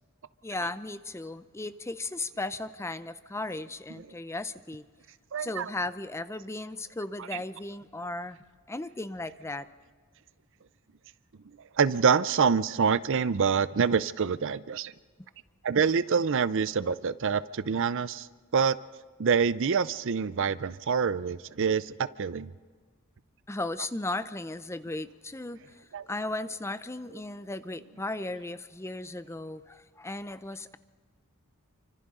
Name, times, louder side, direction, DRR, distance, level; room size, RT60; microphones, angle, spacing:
voice 1, 0.4-4.8 5.4-8.4 8.7-9.7 23.5-30.8, left 2 dB, 15° left, 0.6 m, -36 dB
voice 2, 5.3-5.7 11.7-14.9 15.6-18.3 18.5-18.8 19.2-22.5 25.9-26.1, right 6 dB, 60° right, 0.5 m, -26 dB
29.0 x 25.5 x 3.8 m
head